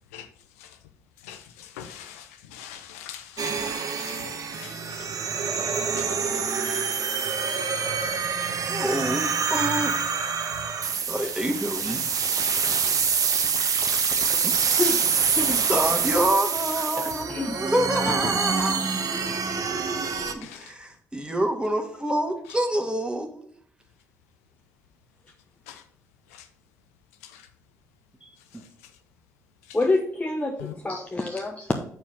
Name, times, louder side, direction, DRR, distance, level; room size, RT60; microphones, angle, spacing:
voice 1, 1.2-5.1 5.9-6.3 20.3-20.6 25.7-25.8 26.3-26.4 27.3-27.4 30.6-30.7, left 10 dB, 85° left, 0.5 m, -43 dB
sound 1, 3.4-20.3, right 6 dB, 50° right, 1.1 m, -26 dB
voice 2, 8.7-10.0 11.1-12.0 14.4-14.5 15.7-18.8 20.3-23.5, right 1 dB, 10° right, 1.6 m, -27 dB
voice 3, 17.0-17.6 18.2-18.4 29.7-30.6 30.8-31.7, left 2 dB, 20° left, 1.0 m, -27 dB
7.0 x 4.6 x 5.6 m
hypercardioid pair, 50°, 8 cm